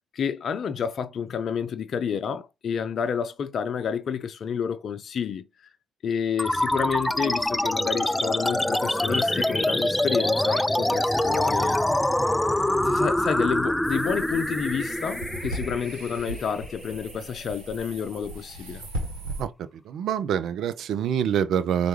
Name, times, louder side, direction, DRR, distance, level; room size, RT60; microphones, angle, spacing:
voice 1, 0.1-5.5 6.0-11.8 12.8-18.8, left 7 dB, 55° left, 0.6 m, -29 dB
sound 1, 6.4-17.3, left 1 dB, 10° left, 0.3 m, -25 dB
sound 2, 13.8-19.4, right 1 dB, 90° right, 1.1 m, -37 dB
voice 2, 19.9-21.9, right 9 dB, 65° right, 0.5 m, -25 dB
4.5 x 2.5 x 3.0 m
hypercardioid pair, 50°, 0 cm